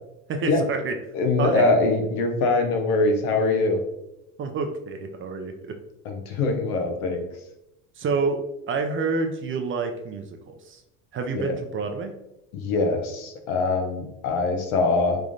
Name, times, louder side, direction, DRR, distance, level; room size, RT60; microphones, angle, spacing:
voice 1, 0.3-1.0 1.4-1.7 4.4-5.7 8.0-8.4 8.7-10.8 11.1-12.1, right 4 dB, 30° right, 5 dB, 0.5 m, -28 dB
voice 2, 1.1-3.8 6.0-7.3 11.3-11.5 12.5-15.2, left 3 dB, 75° left, 4 dB, 0.8 m, -23 dB
3.5 x 3.2 x 2.5 m, 0.85 s
hypercardioid pair, 80°, 43 cm